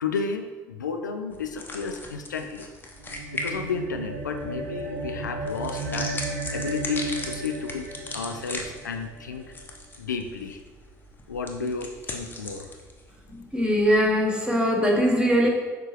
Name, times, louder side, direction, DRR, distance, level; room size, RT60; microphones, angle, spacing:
voice 1, 0.0-2.7 3.3-6.1 6.5-7.9 8.1-9.5 10.0-10.6 11.3-12.7, left 5 dB, 80° left, 6 dB, 0.3 m, -32 dB
sound 1, 1.3-14.2, left 2 dB, 20° left, 1.0 m, -39 dB
sound 2, 3.0-9.7, right 3 dB, 70° right, 0.9 m, -35 dB
voice 2, 13.5-15.5, equal, 10° right, -1 dB, 1.4 m, -21 dB
6.8 x 4.8 x 3.1 m, 1.3 s
figure-of-eight pair, 55°, 10 cm